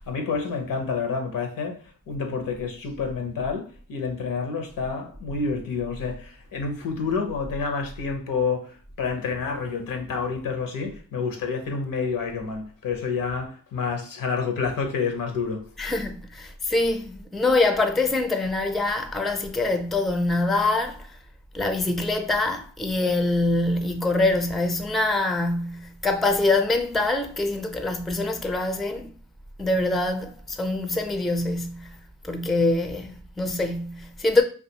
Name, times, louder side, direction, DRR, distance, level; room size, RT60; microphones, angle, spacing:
voice 1, 0.1-15.7, left 5 dB, 80° left, 0.7 m, -29 dB
voice 2, 15.8-21.1 21.5-29.1 29.6-32.0 32.2-34.4, left 2 dB, ahead, 0.4 m, -24 dB
2.5 x 2.4 x 2.7 m
supercardioid pair, 45°, 33 cm